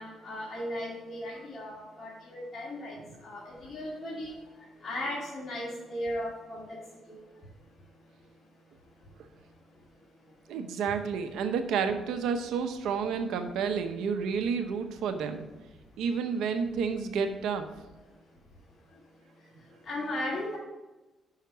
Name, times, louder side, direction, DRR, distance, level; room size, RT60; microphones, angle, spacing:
voice 1, 0.0-3.0 3.2-4.3 4.8-6.8 7.1-7.2 19.9-20.6, left 1 dB, 40° left, -7 dB, 2.3 m, -36 dB
voice 2, 10.5-15.5 16.0-17.7, right 6 dB, 85° right, 7 dB, 0.8 m, -30 dB
5.7 x 5.7 x 6.1 m, 1.1 s
cardioid pair, 90°, 0 cm